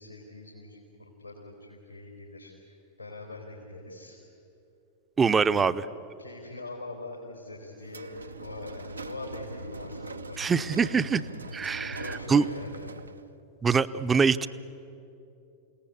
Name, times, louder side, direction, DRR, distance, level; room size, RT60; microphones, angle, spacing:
voice 1, 0.0-4.2 5.5-5.8 6.2-8.1 8.4-10.8 11.7-13.0, left 2 dB, 85° left, -2 dB, 4.2 m, -43 dB
voice 2, 5.2-5.8 10.4-11.2 11.5-12.5 13.6-14.5, right 5 dB, 20° right, 14 dB, 0.7 m, -24 dB
sound 1, 7.8-13.3, right 2 dB, 80° right, 0.8 m, -41 dB
28.5 x 18.5 x 8.6 m, 2.8 s
figure-of-eight pair, 90°, 0 cm